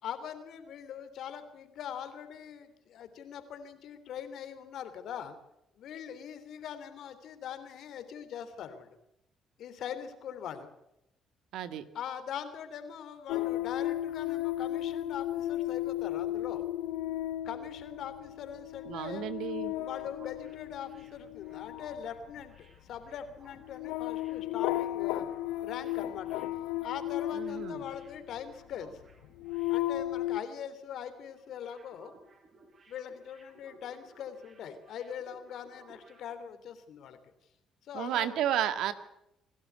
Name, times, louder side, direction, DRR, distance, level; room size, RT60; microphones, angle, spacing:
voice 1, 0.0-5.4 5.8-9.0 9.6-10.7 11.9-16.6 17.4-19.3 19.8-25.3 25.6-26.4 26.8-28.9 29.7-32.1 32.9-37.2 37.8-38.3, left 8 dB, 70° left, 10 dB, 3.2 m, -42 dB
voice 2, 11.5-11.8 18.8-19.7 27.3-27.8 37.9-38.9, right 10 dB, 75° right, 12 dB, 1.8 m, -32 dB
sound 1, 13.3-28.4 29.1-30.4, left 14 dB, 85° left, 0.8 m, -34 dB
sound 2, 19.1-30.6 30.9-31.1 31.4-36.3, right 3 dB, 45° right, 7.0 m, -61 dB
27.0 x 12.0 x 9.5 m, 0.83 s
supercardioid pair, 70°, 0 cm